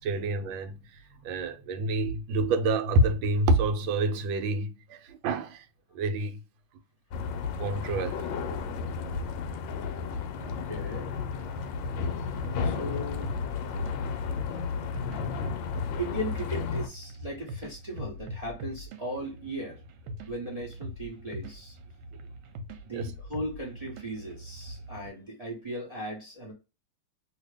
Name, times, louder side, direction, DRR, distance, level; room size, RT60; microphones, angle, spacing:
voice 1, 0.0-5.7 5.9-6.4 7.6-8.2 22.9-23.1, right 2 dB, 75° right, 1.3 m, -28 dB
sound 1, 7.1-16.9, left 5 dB, 75° left, 1.1 m, -33 dB
voice 2, 10.4-11.1 12.6-13.3 16.0-19.8 20.3-21.8 22.8-26.5, equal, 40° right, 0.5 m, -37 dB
sound 2, 11.4-25.1, equal, 90° right, 1.5 m, -43 dB
2.8 x 2.8 x 3.3 m
omnidirectional pair, 2.2 m